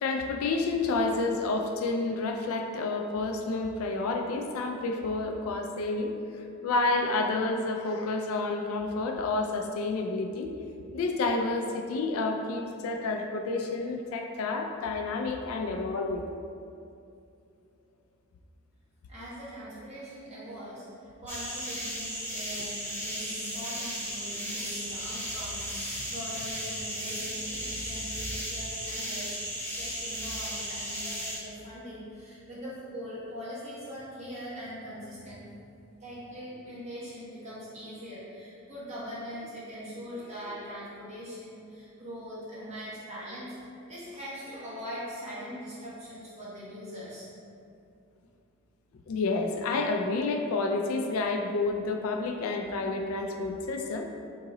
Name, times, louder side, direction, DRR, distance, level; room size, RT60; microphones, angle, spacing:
voice 1, 0.0-10.5 10.9-16.3 49.1-54.0, left 3 dB, 85° left, 3 dB, 0.3 m, -29 dB
voice 2, 19.1-35.4 36.0-47.3, equal, 30° right, -9 dB, 1.2 m, -41 dB
sound 1, 21.3-31.4, equal, 10° left, 0.7 m, -35 dB
3.7 x 2.9 x 3.8 m, 2.5 s
head